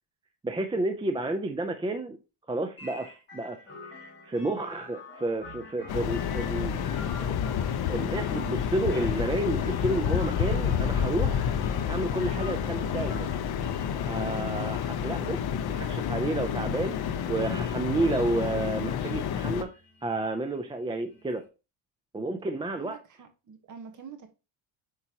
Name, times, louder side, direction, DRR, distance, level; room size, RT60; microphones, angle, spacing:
voice 1, 0.4-2.2 2.5-7.6 7.9-11.5 11.9-13.3 14.1-15.4 15.7-19.7 20.0-21.4 22.1-23.0, right 2 dB, 10° right, 0.5 m, -31 dB
sound 1, 2.8-21.5, left 3 dB, 25° left, 2.7 m, -48 dB
sound 2, 5.9-19.6, left 8 dB, 55° left, 0.8 m, -29 dB
voice 2, 22.8-24.3, right 6 dB, 40° right, 1.4 m, -46 dB
8.3 x 4.4 x 2.9 m
cardioid pair, 155°, 46 cm